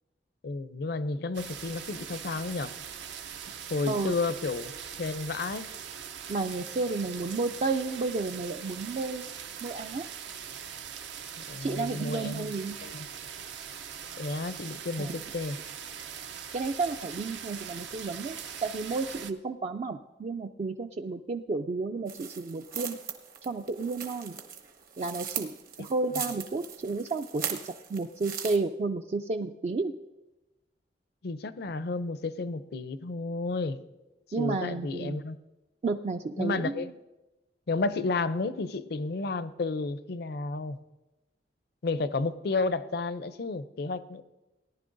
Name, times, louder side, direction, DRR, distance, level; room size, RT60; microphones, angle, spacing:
voice 1, 0.4-2.7 3.7-4.7 5.0-5.7 11.5-12.5 12.8-13.1 14.2-15.6 25.8-25.9 31.2-33.8 34.4-35.4 36.4-36.9 37.7-40.8 41.8-44.2, left 3 dB, 60° left, 14 dB, 0.5 m, -32 dB
sound 1, 1.3-19.3, right 8 dB, 75° right, 0.6 m, -41 dB
voice 2, 6.3-9.3 9.6-10.0 11.6-12.8 15.0-15.2 16.5-18.4 18.6-23.0 23.4-24.4 25.0-29.9 34.3-35.2 35.8-36.9, right 3 dB, 35° right, 7 dB, 0.3 m, -32 dB
sound 2, 22.1-28.6, right 8 dB, 55° right, 1.0 m, -39 dB
18.0 x 10.5 x 2.6 m, 1.0 s
head